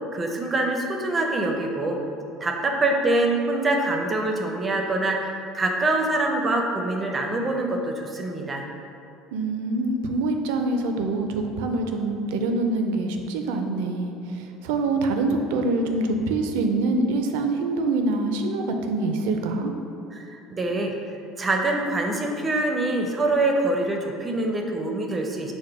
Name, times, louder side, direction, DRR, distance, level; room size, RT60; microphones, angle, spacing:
voice 1, 0.1-2.0 2.4-8.7 20.1-20.9 21.4-25.5, right 2 dB, 20° right, 2 dB, 0.5 m, -25 dB
voice 2, 9.3-19.7, right 2 dB, 85° right, 5 dB, 0.4 m, -25 dB
4.8 x 2.1 x 4.6 m, 2.6 s
supercardioid pair, 120°, 0 cm